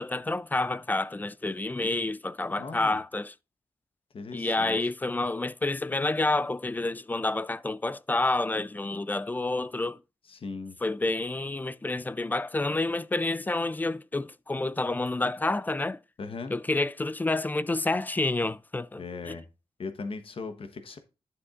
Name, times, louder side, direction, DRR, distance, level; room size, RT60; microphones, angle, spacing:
voice 1, 0.0-3.3 4.3-10.0 10.8-16.0 16.5-19.3, left 2 dB, 15° left, 0.3 m, -29 dB
voice 2, 2.6-3.0 4.1-4.8 10.3-10.8 16.2-16.5 19.0-19.5 19.8-21.0, left 4 dB, 65° left, 1.1 m, -38 dB
11.0 x 6.9 x 2.4 m
wide cardioid pair, 105°, 10 cm